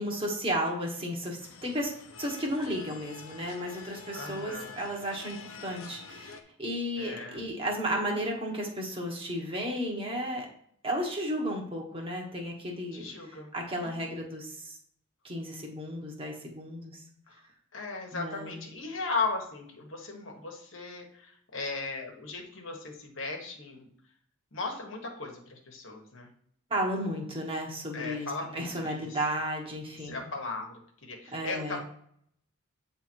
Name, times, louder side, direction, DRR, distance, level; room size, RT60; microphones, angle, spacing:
voice 1, 0.0-1.9 2.2-10.5 10.8-13.1 13.5-14.8 15.2-17.0 18.1-18.6 26.7-30.2 31.3-31.8, equal, 25° right, 0 dB, 1.5 m, -33 dB
sound 1, 1.4-6.4, left 5 dB, 80° left, 0.8 m, -47 dB
voice 2, 4.1-4.7 7.0-7.4 12.9-13.5 13.8-14.1 17.3-17.4 17.7-23.9 24.5-26.3 27.9-29.2 30.0-30.7 31.0-31.8, left 3 dB, 65° left, 2 dB, 1.4 m, -37 dB
8.8 x 3.5 x 4.5 m, 0.64 s
head